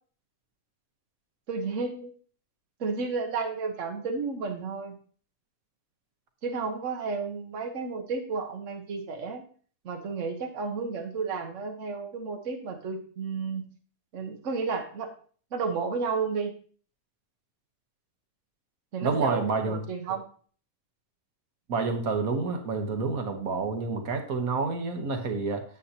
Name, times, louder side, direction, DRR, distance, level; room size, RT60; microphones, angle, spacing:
voice 1, 1.5-2.1 2.8-5.0 6.4-9.4 9.8-13.7 14.1-15.1 15.5-16.5 18.9-20.3, right 4 dB, 60° right, 3 dB, 1.3 m, -32 dB
voice 2, 19.0-19.8 21.7-25.6, right 4 dB, 75° right, 5 dB, 1.6 m, -28 dB
9.1 x 7.9 x 2.8 m, 0.44 s
omnidirectional pair, 1.5 m